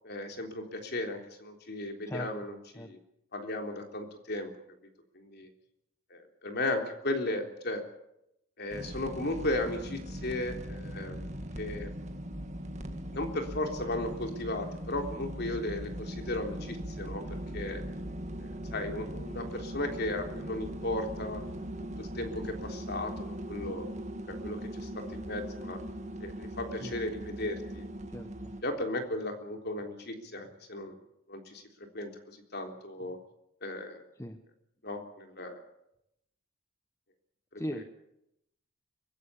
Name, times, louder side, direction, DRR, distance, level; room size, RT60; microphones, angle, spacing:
voice 1, 0.0-3.0 3.3-4.5 5.1-5.5 6.1-7.8 8.6-11.9 12.8-17.8 18.4-21.5 22.0-23.9 24.3-25.8 26.2-27.9 28.6-31.0 31.3-31.6 31.9-33.2 33.6-34.0 34.8-35.6 37.5-37.8, left 1 dB, 50° left, 4 dB, 3.5 m, -36 dB
sound 1, 8.7-28.6, right 1 dB, 35° right, 1.9 m, -40 dB
voice 2, 28.1-28.5 34.2-34.4 37.6-37.8, equal, 15° left, 7 dB, 1.1 m, -38 dB
23.0 x 16.5 x 8.5 m, 0.82 s
head